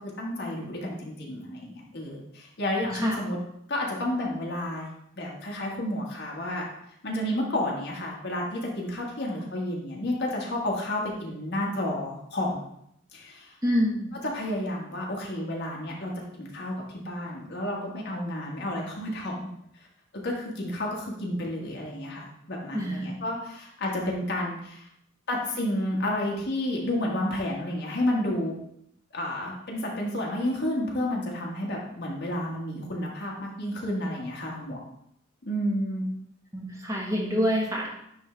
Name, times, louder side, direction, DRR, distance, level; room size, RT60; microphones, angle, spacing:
voice 1, 0.2-3.4 3.7-4.9 5.1-6.6 7.0-12.6 13.1-13.5 14.2-16.1 16.4-19.4 19.7-19.9 20.1-24.9 25.3-28.5 29.1-34.8 35.4-36.1, left 1 dB, 55° left, -2 dB, 1.5 m, -31 dB
voice 2, 13.6-14.1 22.7-23.1 36.5-37.9, equal, 15° right, -2 dB, 1.2 m, -26 dB
9.6 x 3.5 x 3.3 m, 0.74 s
head